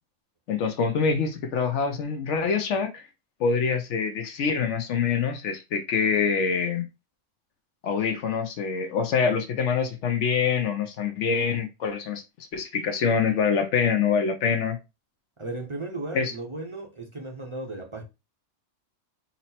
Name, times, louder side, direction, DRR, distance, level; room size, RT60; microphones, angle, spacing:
voice 1, 0.5-3.1 3.4-6.8 7.8-14.8 16.1-16.3, left 6 dB, 70° left, 0.9 m, -25 dB
voice 2, 15.4-18.0, right 2 dB, 30° right, 0.6 m, -35 dB
4.1 x 2.0 x 4.1 m
omnidirectional pair, 1.3 m